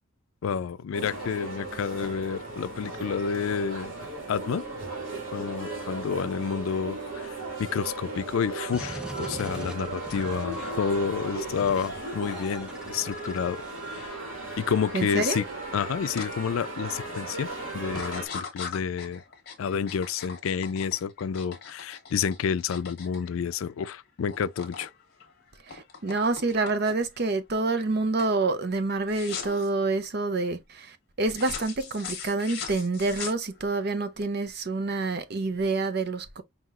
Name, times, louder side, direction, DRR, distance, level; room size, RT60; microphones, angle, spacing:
voice 1, 0.4-3.9 4.3-4.7 5.3-14.2 14.6-15.5 15.7-17.5 17.7-19.2 19.6-24.9, left 6 dB, 85° left, 0.4 m, -29 dB
sound 1, 0.9-18.3, right 2 dB, 75° right, 1.7 m, -36 dB
sound 2, 8.7-10.9 11.6-11.9 12.2-14.1, equal, 5° right, 0.5 m, -42 dB
voice 2, 14.9-15.4 25.7-36.4, right 3 dB, 50° right, 0.6 m, -27 dB
sound 3, 16.2-16.3 16.8-17.2 17.9-23.9 24.2-24.9 25.2-27.2 27.6-27.9 28.2-28.4 29.1-29.7 31.3-33.8, left 6 dB, 50° left, 1.2 m, -40 dB
5.6 x 2.8 x 2.4 m
head